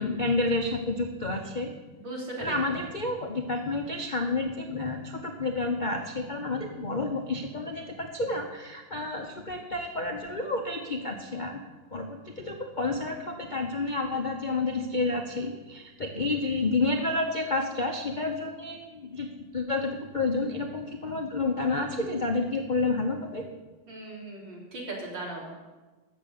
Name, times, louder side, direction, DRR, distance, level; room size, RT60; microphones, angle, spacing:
voice 1, 0.0-1.7 2.4-11.6 11.9-23.5, left 2 dB, 45° left, 3 dB, 0.6 m, -30 dB
voice 2, 2.0-2.6 23.9-25.5, right 2 dB, 65° right, -3 dB, 4.0 m, -38 dB
14.0 x 6.9 x 8.3 m, 1.2 s
omnidirectional pair, 2.3 m